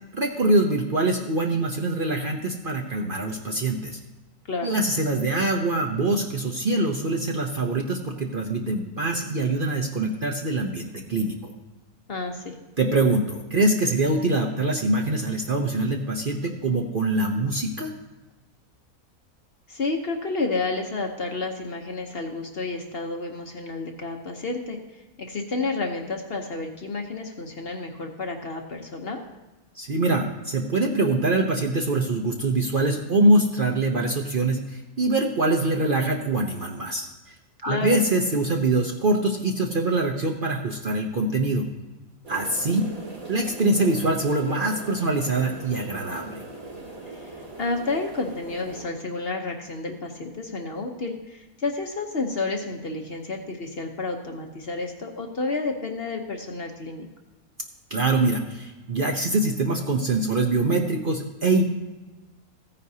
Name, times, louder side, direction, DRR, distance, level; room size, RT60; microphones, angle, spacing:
voice 1, 0.1-4.0 4.6-11.5 12.8-17.9 29.8-37.1 37.6-41.7 42.3-42.8 43.3-46.4 57.9-61.6, right 2 dB, 45° right, 1 dB, 0.8 m, -24 dB
voice 2, 12.1-12.6 19.7-29.2 37.6-38.1 47.1-57.1, left 3 dB, 45° left, 3 dB, 1.0 m, -30 dB
sound 1, 42.2-48.8, right 2 dB, 65° right, 2.9 m, -40 dB
15.0 x 9.6 x 2.8 m, 1.1 s
omnidirectional pair, 1.6 m